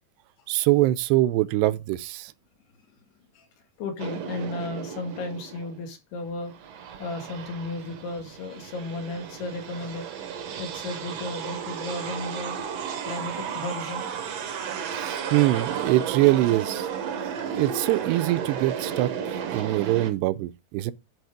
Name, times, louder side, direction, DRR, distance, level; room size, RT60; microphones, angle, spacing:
voice 1, 0.5-2.3 15.0-16.9 17.6-20.9, right 17 dB, 85° right, 2.7 m, -23 dB
voice 2, 3.8-6.5 7.0-10.1 10.6-12.6 13.1-14.1 14.5-14.6, left 2 dB, 70° left, 4.0 m, -34 dB
sound 1, 4.0-5.8 6.3-20.1, right 7 dB, 65° right, 1.6 m, -33 dB
11.0 x 4.9 x 5.0 m
omnidirectional pair, 4.8 m